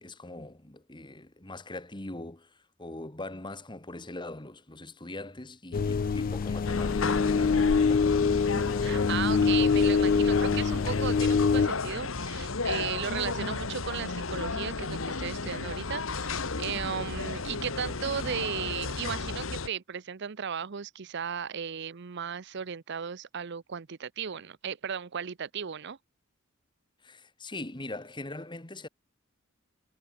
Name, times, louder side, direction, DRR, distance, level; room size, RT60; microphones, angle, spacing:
voice 1, 0.0-8.4 27.0-28.9, left 2 dB, 25° left, 1.9 m, -42 dB
sound 1, 5.7-11.7, left 5 dB, 45° left, 0.3 m, -24 dB
sound 2, 6.6-19.7, left 3 dB, 70° left, 1.6 m, -34 dB
voice 2, 8.5-26.0, right 7 dB, 55° right, 0.6 m, -35 dB
head